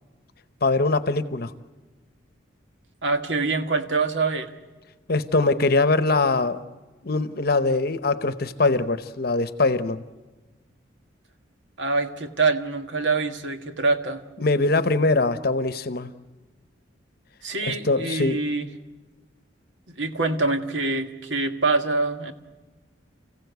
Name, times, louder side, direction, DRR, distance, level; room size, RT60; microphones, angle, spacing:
voice 1, 0.6-1.5 5.1-6.6 7.0-10.0 14.4-16.1 17.6-18.4, left 3 dB, 50° left, 12 dB, 0.9 m, -22 dB
voice 2, 3.0-4.5 11.8-14.2 17.4-18.7 20.0-22.3, right 3 dB, 70° right, 6 dB, 1.6 m, -25 dB
29.5 x 15.5 x 8.1 m, 1.3 s
head